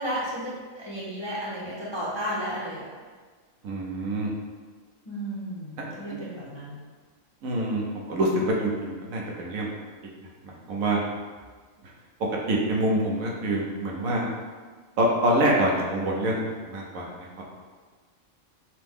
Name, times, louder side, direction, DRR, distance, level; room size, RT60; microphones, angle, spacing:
voice 1, 0.0-2.9 5.1-6.8, equal, 30° left, -8 dB, 0.5 m, -33 dB
voice 2, 3.6-4.3 5.8-6.2 7.4-9.7 10.4-11.0 11.8-11.9 12.5-14.3 15.0-17.4, right 1 dB, 85° right, -2 dB, 1.2 m, -26 dB
5.8 x 2.1 x 3.5 m, 1.5 s
omnidirectional pair, 1.4 m